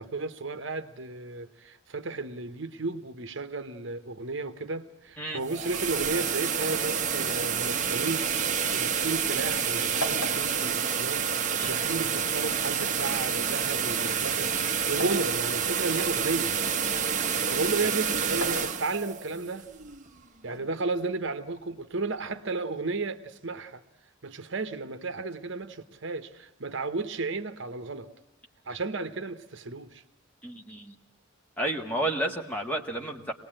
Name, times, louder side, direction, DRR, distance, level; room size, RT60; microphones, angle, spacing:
voice 1, 0.0-16.6 17.5-19.7 20.4-23.8 24.2-28.1 28.7-30.0, right 3 dB, 60° right, 1.0 m, -33 dB
sound 1, 5.3-20.2, right 7 dB, 35° right, 0.9 m, -28 dB
sound 2, 10.0-12.0 12.8-15.3 15.9-17.1 18.2-19.3 20.4-21.5, left 1 dB, 85° left, 3.0 m, -40 dB
voice 2, 30.4-30.9 31.6-33.3, right 1 dB, 5° left, 1.7 m, -31 dB
25.0 x 19.0 x 8.9 m
head